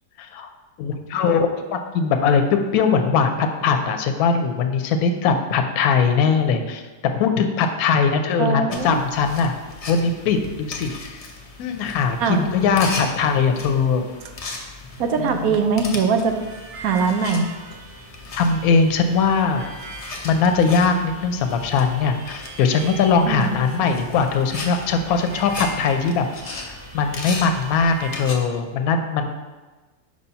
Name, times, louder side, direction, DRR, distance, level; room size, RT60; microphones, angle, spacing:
voice 1, 0.2-0.5 0.8-6.8 7.1-9.5 9.9-11.2 11.6-14.1 15.2-15.5 18.4-19.7 20.2-26.3 26.5-29.3, left 5 dB, 75° left, 6 dB, 1.1 m, -20 dB
voice 2, 8.4-9.0 12.2-12.4 15.0-16.4 16.8-17.5 23.2-23.6, right 5 dB, 75° right, 5 dB, 1.1 m, -21 dB
sound 1, 8.7-28.3, left 3 dB, 50° left, 0.4 m, -37 dB
Harmonica, 16.3-28.3, right 3 dB, 60° right, 0.7 m, -42 dB
4.9 x 4.1 x 5.6 m, 1.3 s
omnidirectional pair, 1.6 m